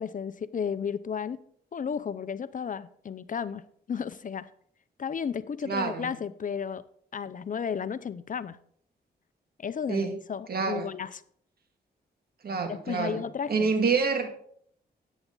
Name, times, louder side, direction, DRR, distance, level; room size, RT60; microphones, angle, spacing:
voice 1, 0.0-1.4 1.7-4.5 5.0-6.8 7.1-8.6 9.6-11.2 12.6-13.7, left 7 dB, 50° left, 15 dB, 0.7 m, -33 dB
voice 2, 5.7-6.1 9.9-10.1 10.5-10.9 12.4-13.2 13.5-14.3, right 5 dB, 60° right, 5 dB, 2.1 m, -27 dB
13.0 x 9.2 x 3.9 m, 0.63 s
cardioid pair, 75°, 17 cm